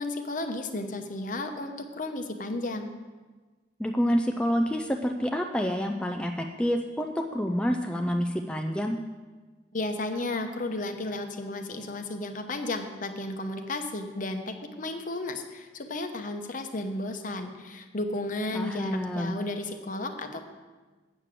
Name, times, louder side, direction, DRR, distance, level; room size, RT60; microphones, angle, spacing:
voice 1, 0.0-2.9 9.7-20.4, left 2 dB, 45° left, 6 dB, 0.9 m, -33 dB
voice 2, 3.8-9.0 18.5-19.4, equal, 5° left, 4 dB, 0.4 m, -28 dB
8.1 x 6.7 x 7.4 m, 1.3 s
head